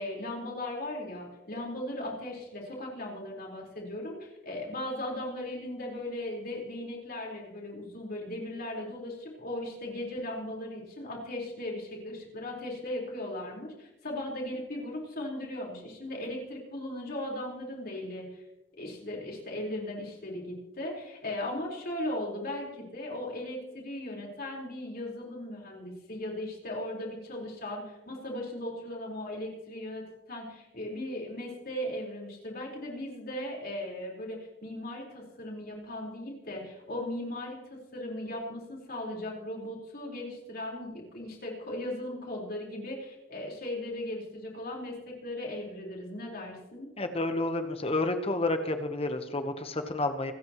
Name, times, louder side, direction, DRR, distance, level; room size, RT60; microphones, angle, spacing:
voice 1, 0.0-18.4 18.8-46.9, left 1 dB, 50° left, -2 dB, 4.5 m, -37 dB
voice 2, 47.0-50.3, left 2 dB, 30° left, 7 dB, 1.1 m, -30 dB
26.5 x 13.5 x 3.1 m, 1.0 s
head